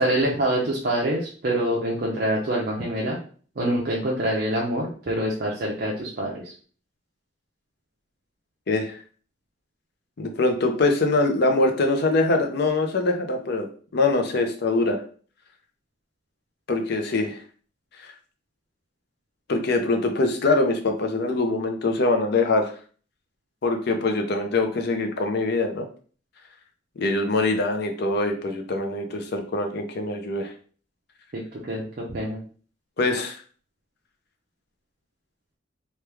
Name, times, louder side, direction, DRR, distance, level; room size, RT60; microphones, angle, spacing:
voice 1, 0.0-3.2 3.6-6.5 31.3-32.4, right 1 dB, 55° right, -3 dB, 0.6 m, -25 dB
voice 2, 8.7-9.0 10.2-13.7 13.9-15.0 16.7-17.4 19.5-22.7 23.6-25.9 27.0-30.5 33.0-33.4, left 2 dB, 60° left, 5 dB, 0.6 m, -23 dB
3.1 x 2.3 x 3.3 m, 0.42 s
head